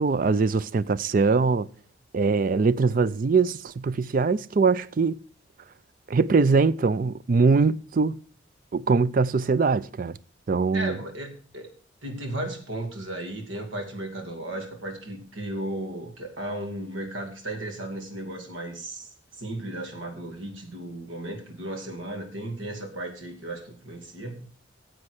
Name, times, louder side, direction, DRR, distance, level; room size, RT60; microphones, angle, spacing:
voice 1, 0.0-1.7 2.1-5.2 6.1-8.1 8.7-10.1 10.5-11.0, right 4 dB, 45° right, 0.4 m, -22 dB
voice 2, 10.7-11.7 12.0-19.1 19.4-24.5, right 1 dB, 90° right, 2.5 m, -35 dB
9.7 x 7.8 x 6.4 m
head